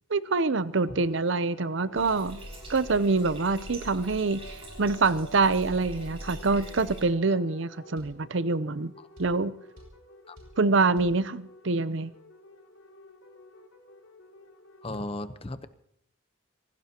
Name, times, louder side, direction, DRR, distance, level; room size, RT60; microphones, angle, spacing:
voice 1, 0.1-2.4 2.7-8.9 9.2-9.5 10.6-12.1, right 3 dB, 60° right, 15 dB, 0.7 m, -25 dB
sound 1, 0.7-15.1, left 2 dB, 75° left, 4.8 m, -51 dB
Bathtub (filling or washing), 1.9-7.0, right 1 dB, 30° right, 5.7 m, -43 dB
sound 2, 6.8-7.0 8.0-8.2 9.2-9.4 9.8-10.0 10.4-10.6 11.0-11.2, equal, 90° right, 5.8 m, -50 dB
voice 2, 14.8-15.7, left 1 dB, 25° left, 11 dB, 0.9 m, -35 dB
25.5 x 17.5 x 2.9 m, 0.74 s
head